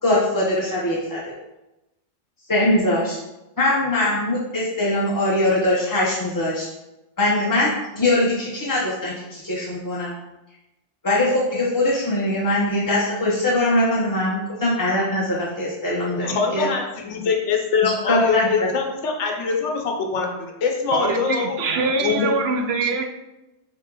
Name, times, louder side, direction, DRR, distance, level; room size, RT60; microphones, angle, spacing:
voice 1, 0.0-1.2 2.5-3.2 3.6-6.7 7.2-10.1 11.0-16.7 17.8-18.7, left 1 dB, 25° left, -7 dB, 0.5 m, -22 dB
voice 2, 16.2-22.4, left 5 dB, 80° left, 2 dB, 1.0 m, -24 dB
voice 3, 20.9-23.0, right 4 dB, 65° right, 4 dB, 0.7 m, -23 dB
4.3 x 2.9 x 3.6 m, 0.98 s
omnidirectional pair, 1.2 m